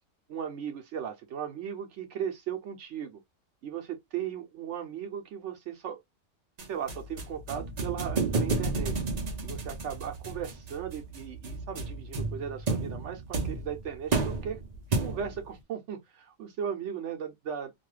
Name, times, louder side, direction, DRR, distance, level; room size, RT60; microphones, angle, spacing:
voice 1, 0.3-3.2 3.6-6.0 6.7-9.0 9.4-14.6 15.0-17.7, right 8 dB, 75° right, 0.9 m, -37 dB
sound 1, 6.6-15.5, right 3 dB, 45° right, 0.6 m, -32 dB
2.6 x 2.2 x 3.1 m
omnidirectional pair, 1.3 m